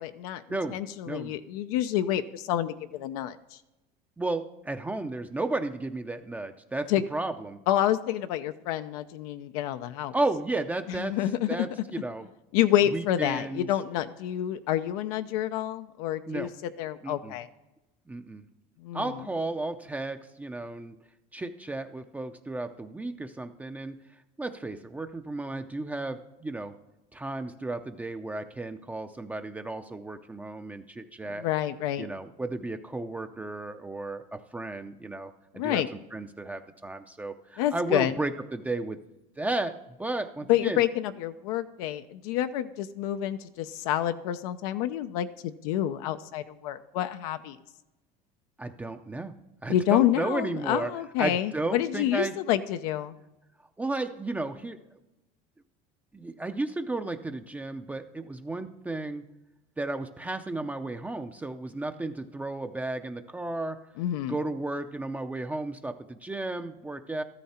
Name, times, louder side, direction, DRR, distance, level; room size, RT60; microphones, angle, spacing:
voice 1, 0.0-0.4 0.7-3.6 6.9-7.0 7.7-10.1 11.0-11.6 12.5-16.5 16.8-17.5 18.8-19.1 31.4-32.1 35.5-35.9 37.6-38.1 40.5-47.6 49.7-53.2 64.0-64.3, left 12 dB, 85° left, 9 dB, 0.6 m, -28 dB
voice 2, 4.2-7.6 10.1-11.2 11.5-12.3 12.9-13.7 16.3-16.5 17.0-17.3 18.1-18.4 18.9-21.0 21.3-24.0 24.4-26.7 27.1-31.5 32.0-39.0 39.4-40.8 48.6-49.3 49.6-50.9 51.2-52.3 53.8-54.8 56.1-59.2 59.8-63.8 64.3-67.2, right 2 dB, 10° right, 7 dB, 0.5 m, -33 dB
13.5 x 13.0 x 4.3 m, 0.98 s
cardioid pair, 150°, 18 cm